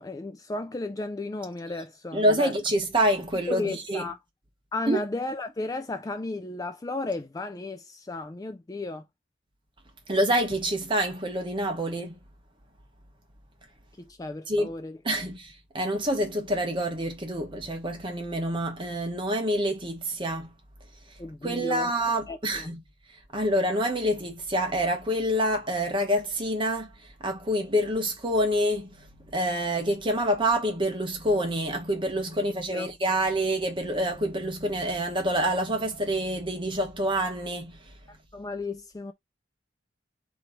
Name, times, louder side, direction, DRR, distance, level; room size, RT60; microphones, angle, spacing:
voice 1, 0.0-2.5 3.5-4.2 4.7-9.0 14.0-15.0 21.2-21.9 22.3-22.7 32.7-32.9 38.3-39.1, left 2 dB, 20° left, 0.4 m, -34 dB
voice 2, 2.1-4.1 4.9-5.0 10.1-12.2 14.5-14.7 15.0-20.5 21.4-22.8 23.3-26.9 27.2-28.9 29.3-37.8, equal, 25° right, 1.2 m, -27 dB
3.9 x 3.1 x 4.4 m
head